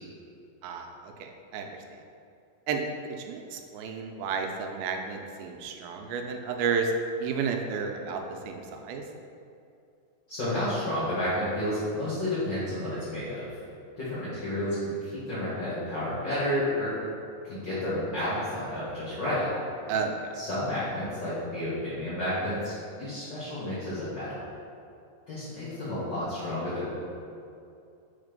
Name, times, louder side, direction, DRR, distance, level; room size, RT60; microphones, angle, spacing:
voice 1, 0.6-1.7 2.7-2.8 3.2-6.9 7.2-9.0 19.9-20.2, right 5 dB, 85° right, 3 dB, 2.4 m, -32 dB
voice 2, 10.3-13.5 14.0-16.9 17.4-19.5 20.3-24.4 25.3-27.0, left 1 dB, 50° left, -11 dB, 1.3 m, -31 dB
4.8 x 4.2 x 5.1 m, 2.6 s
omnidirectional pair, 4.1 m